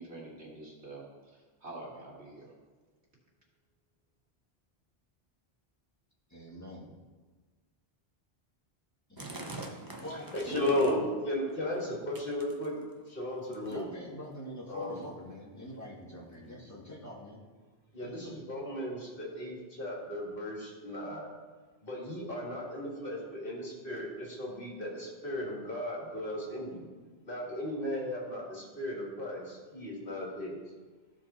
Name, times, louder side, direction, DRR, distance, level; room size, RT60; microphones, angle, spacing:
voice 1, 0.0-2.5, right 2 dB, 85° right, -4 dB, 2.6 m, -46 dB
voice 2, 6.3-6.9 9.1-9.6 10.0-10.9 13.6-17.4 18.0-18.4, equal, 15° left, -5 dB, 1.9 m, -44 dB
sound 1, 9.2-11.1 11.5-11.9 12.1-13.0 13.5-13.9 14.6-14.7 14.9-15.0 15.7-15.8 16.5-16.6, right 2 dB, 20° right, 0.8 m, -44 dB
voice 3, 9.5-12.8 13.1-13.9 14.7-15.0 17.9-21.3 21.8-26.8 27.3-30.6, left 1 dB, 55° left, -3 dB, 2.3 m, -35 dB
14.5 x 4.9 x 4.2 m, 1.4 s
omnidirectional pair, 1.1 m